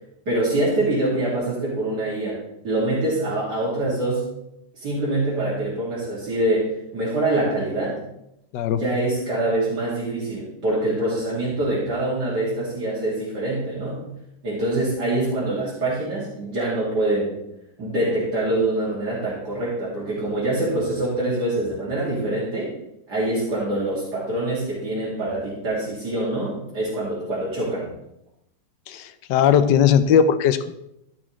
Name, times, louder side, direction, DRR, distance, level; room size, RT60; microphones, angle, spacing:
voice 1, 0.3-2.4 2.6-4.2 4.7-8.0 8.8-14.0 14.4-17.4 17.8-22.7 23.1-27.9, right 1 dB, 70° right, -7 dB, 3.0 m, -24 dB
voice 2, 28.9-30.7, left 8 dB, 85° left, 11 dB, 1.3 m, -18 dB
13.5 x 6.2 x 3.1 m, 0.81 s
omnidirectional pair, 1.8 m